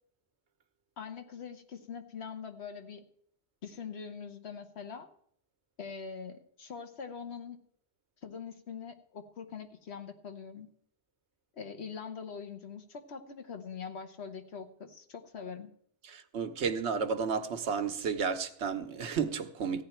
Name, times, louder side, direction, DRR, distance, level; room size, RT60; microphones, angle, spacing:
voice 1, 1.0-3.0 3.6-5.1 5.8-7.6 8.2-10.7 11.6-15.7, left 6 dB, 75° left, 1.4 m, -43 dB
voice 2, 16.0-19.8, right 6 dB, 85° right, 1.2 m, -32 dB
15.0 x 9.9 x 4.4 m
omnidirectional pair, 1.1 m